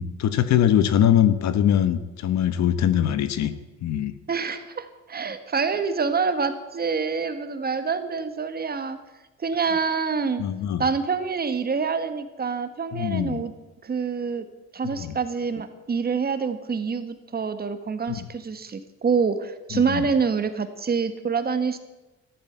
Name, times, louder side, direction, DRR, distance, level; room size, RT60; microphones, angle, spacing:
voice 1, 0.0-3.5 3.8-4.1 10.4-10.8 12.9-13.4 15.0-15.1 18.1-18.2 19.7-20.1, left 10 dB, 60° left, 13 dB, 1.2 m, -22 dB
voice 2, 4.3-9.0 9.4-10.4 10.8-13.5 13.8-14.4 14.7-21.8, right 5 dB, 30° right, 9 dB, 1.6 m, -26 dB
14.0 x 12.0 x 8.1 m, 1.1 s
cardioid pair, 105°, 31 cm